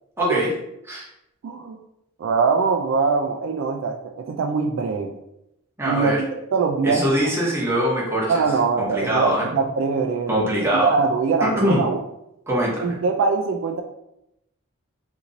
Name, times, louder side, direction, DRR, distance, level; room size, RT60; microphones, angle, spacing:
voice 1, 0.2-0.5 0.8-1.1 5.8-6.2 6.8-8.4 8.8-9.5 10.3-10.9 11.4-11.8 12.5-13.0, equal, 10° right, -6 dB, 0.9 m, -22 dB
voice 2, 1.4-1.8 2.2-5.1 5.9-6.1 6.5-7.1 8.3-12.0 12.8-13.8, right 4 dB, 65° right, 5 dB, 0.3 m, -22 dB
2.9 x 2.6 x 3.8 m, 0.83 s
head